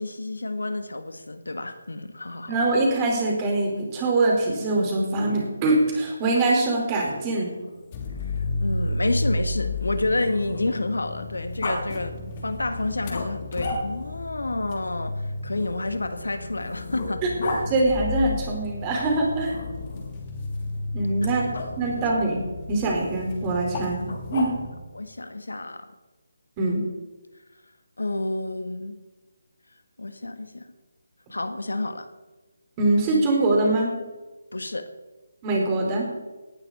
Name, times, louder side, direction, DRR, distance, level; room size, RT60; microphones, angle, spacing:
voice 1, 0.0-2.6 8.3-8.4 8.6-17.2 21.2-21.3 21.9-22.0 24.1-24.2 24.9-25.9 28.0-28.9 30.0-30.7 31.3-32.1 34.5-34.9, left 2 dB, 75° left, 9 dB, 1.5 m, -29 dB
voice 2, 2.5-7.5 17.2-17.3 17.7-19.6 20.9-21.5 21.8-22.4 22.7-24.0 24.3-24.5 26.6-26.8 32.8-33.9 35.4-36.1, right 2 dB, 20° right, -1 dB, 4.5 m, -23 dB
Growling, 7.5-10.9 11.6-11.8 13.1-14.2 15.5-17.7 19.5-20.2 21.5-21.7 24.0-24.9, left 2 dB, 50° left, 4.9 m, -35 dB
sound 1, 7.9-24.7, left 2 dB, 30° left, 2.8 m, -33 dB
18.0 x 11.5 x 4.2 m, 1.2 s
figure-of-eight pair, 150°, 0 cm